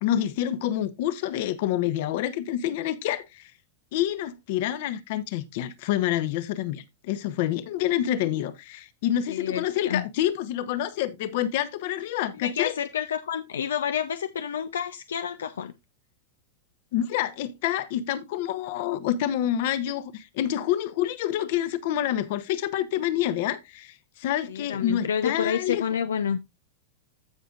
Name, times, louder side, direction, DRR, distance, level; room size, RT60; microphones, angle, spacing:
voice 1, 0.0-3.5 3.9-12.7 16.9-25.8, left 11 dB, 60° left, 1.0 m, -27 dB
voice 2, 9.3-10.0 12.3-15.7 24.5-26.4, left 8 dB, 90° left, 0.5 m, -29 dB
15.0 x 5.1 x 2.5 m
hypercardioid pair, 115°, 0 cm